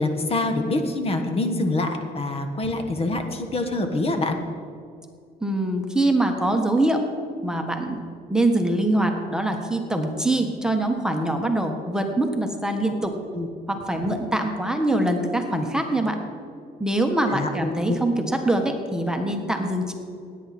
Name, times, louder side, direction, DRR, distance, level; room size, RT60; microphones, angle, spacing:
voice 1, 0.0-4.4 13.3-13.5 13.9-14.1 17.3-17.5 17.9-18.0, left 2 dB, 35° left, 5 dB, 1.3 m, -25 dB
voice 2, 5.4-7.1 7.4-8.0 8.3-13.1 13.7-16.2 16.8-19.9, right 1 dB, 5° right, 3 dB, 1.3 m, -23 dB
17.0 x 9.4 x 4.3 m, 2.4 s
cardioid pair, 110°, 17 cm